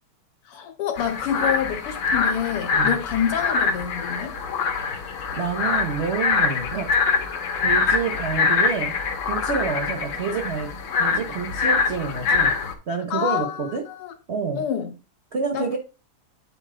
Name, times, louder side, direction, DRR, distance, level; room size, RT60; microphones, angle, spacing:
voice 1, 0.5-4.4 13.1-14.1 14.6-14.9 15.5-15.7, left 9 dB, 90° left, 2.2 m, -27 dB
sound 1, 1.0-12.7, left 5 dB, 70° left, 1.8 m, -24 dB
voice 2, 5.3-6.9 7.5-8.9 9.3-12.6 12.9-13.8 14.3-14.6 15.3-15.8, right 5 dB, 55° right, 0.7 m, -28 dB
8.8 x 4.2 x 3.7 m
omnidirectional pair, 2.4 m